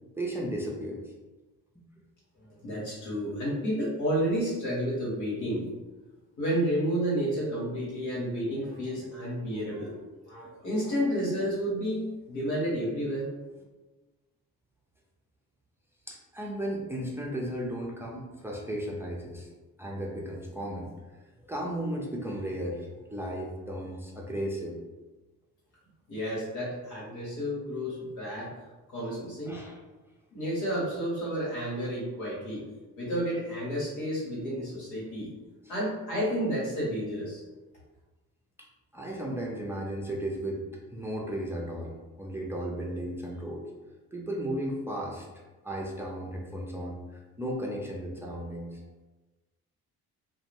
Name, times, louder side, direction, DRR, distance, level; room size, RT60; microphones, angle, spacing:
voice 1, 0.2-1.0 16.1-19.5 19.8-20.9 21.5-24.8 29.5-29.8 38.9-40.6 40.9-43.6 44.1-45.3 45.6-48.8, right 1 dB, 5° right, -2 dB, 0.5 m, -35 dB
voice 2, 2.6-5.7 6.4-10.0 10.2-13.3 26.1-28.5 28.9-29.6 30.3-32.6 33.0-35.3 35.7-37.4, equal, 80° left, -7 dB, 1.1 m, -31 dB
2.4 x 2.2 x 3.2 m, 1.2 s
hypercardioid pair, 45°, 43 cm